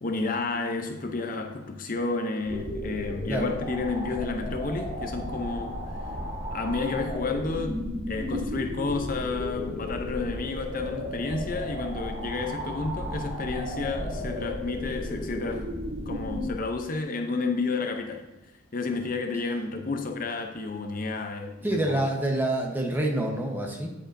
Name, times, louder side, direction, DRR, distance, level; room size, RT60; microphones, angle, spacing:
voice 1, 0.0-6.0 6.5-15.7 16.1-18.2 18.7-22.0, left 3 dB, 40° left, 5 dB, 0.6 m, -31 dB
sound 1, 2.5-16.5, equal, 45° right, 2.4 m, -34 dB
voice 2, 21.6-23.9, right 1 dB, 10° right, 1 dB, 1.0 m, -27 dB
9.1 x 8.4 x 2.6 m, 1.1 s
head